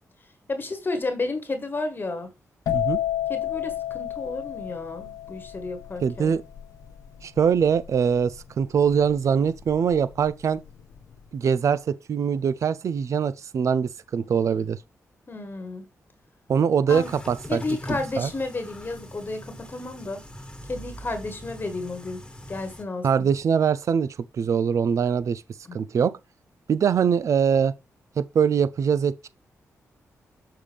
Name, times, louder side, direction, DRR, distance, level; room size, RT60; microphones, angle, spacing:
voice 1, 0.5-2.3 3.3-6.3 15.3-15.9 16.9-17.1 17.5-20.2 20.7-22.2 22.5-23.3 25.7-25.8, left 3 dB, 35° left, 1.4 m, -32 dB
sound 1, 2.7-10.2 10.5-11.0, left 12 dB, 85° left, 1.0 m, -31 dB
voice 2, 6.0-6.4 7.2-10.6 11.3-14.8 16.5-17.6 18.2-18.3 23.0-25.4 25.7-26.1 26.7-27.7 28.2-29.3, right 7 dB, 60° right, 0.5 m, -23 dB
sound 2, 16.9-22.8, equal, 15° left, 1.5 m, -41 dB
6.6 x 5.6 x 3.4 m
cardioid pair, 75°, 6 cm